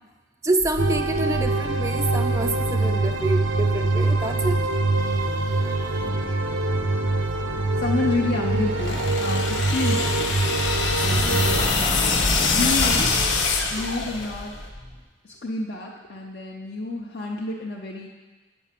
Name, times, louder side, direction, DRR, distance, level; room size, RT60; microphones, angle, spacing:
voice 1, 0.4-4.6 4.9-6.2 11.1-11.3, right 2 dB, 15° right, 7 dB, 0.4 m, -28 dB
sound 1, 0.6-15.0, left 1 dB, 30° left, 1.0 m, -32 dB
sound 2, 0.8-11.6, right 2 dB, 85° right, 0.7 m, -24 dB
voice 2, 6.0-6.5 7.8-10.3 11.0-12.0 12.5-13.1 13.7-14.5 15.2-18.1, left 2 dB, 50° left, -2 dB, 0.7 m, -30 dB
sound 3, 8.7-14.5, left 5 dB, 80° left, 1.0 m, -25 dB
8.2 x 5.4 x 7.5 m, 1.3 s
head